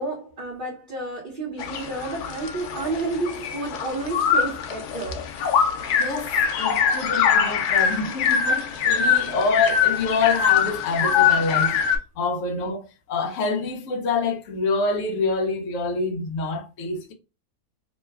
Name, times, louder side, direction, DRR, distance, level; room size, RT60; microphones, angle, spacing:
voice 1, 0.0-5.3 7.9-8.0 9.1-9.3, right 2 dB, 40° right, 1.0 m, -31 dB
sound 1, 1.6-12.0, left 7 dB, 90° left, 1.2 m, -23 dB
voice 2, 6.0-11.8 12.2-17.1, left 3 dB, 60° left, 1.0 m, -26 dB
3.0 x 2.2 x 3.4 m
omnidirectional pair, 1.6 m